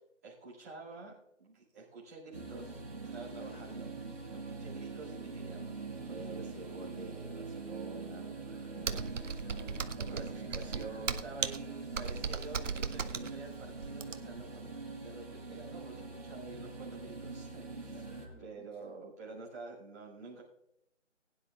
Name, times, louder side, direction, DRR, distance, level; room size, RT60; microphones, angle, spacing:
voice 1, 0.2-3.9 4.3-5.8 6.0-9.2 10.1-14.7 15.0-18.0 18.4-20.4, right 3 dB, 15° right, -9 dB, 2.2 m, -48 dB
sound 1, 2.3-18.3, right 3 dB, 30° right, 3.1 m, -44 dB
voice 2, 3.4-3.8 8.7-10.0 10.7-11.0 17.9-18.9, left 1 dB, 50° left, 0 dB, 2.6 m, -57 dB
Computer keyboard, 8.8-14.5, right 5 dB, 75° right, 0.8 m, -37 dB
20.5 x 9.7 x 2.4 m, 0.79 s
hypercardioid pair, 180°, 37 cm